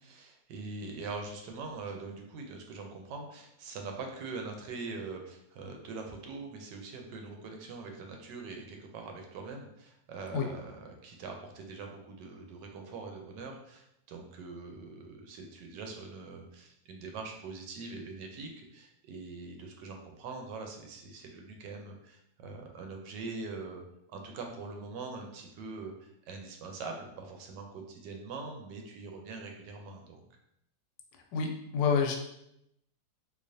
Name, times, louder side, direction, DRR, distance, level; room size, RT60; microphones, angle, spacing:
voice 1, 0.0-23.8 24.1-30.2, right 3 dB, 75° right, 3 dB, 1.2 m, -43 dB
voice 2, 31.3-32.2, left 5 dB, 85° left, 3 dB, 1.3 m, -28 dB
3.9 x 2.8 x 2.6 m, 0.79 s
omnidirectional pair, 2.0 m